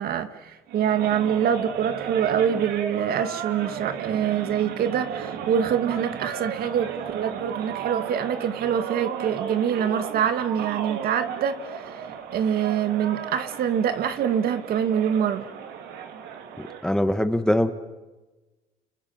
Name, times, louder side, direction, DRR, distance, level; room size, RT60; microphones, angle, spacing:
voice 1, 0.0-12.0 12.3-15.5, right 8 dB, 65° right, 9 dB, 2.1 m, -25 dB
sound 1, 0.7-16.9, right 7 dB, 80° right, 3.3 m, -34 dB
voice 2, 16.8-17.7, left 1 dB, 5° left, 9 dB, 1.5 m, -22 dB
29.5 x 29.5 x 5.9 m, 1.1 s
cardioid pair, 110°, 17 cm